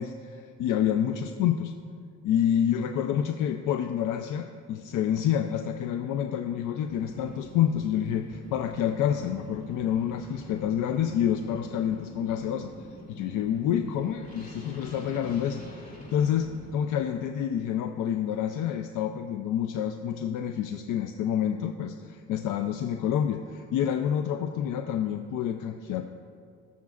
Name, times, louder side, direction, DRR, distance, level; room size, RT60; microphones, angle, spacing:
voice 1, 0.0-1.7 2.2-26.0, left 9 dB, 85° left, 6 dB, 0.5 m, -28 dB
sound 1, 6.9-16.7, left 1 dB, 25° left, 2.5 m, -45 dB
19.0 x 7.2 x 2.4 m, 2.3 s
cardioid pair, 90°, 30 cm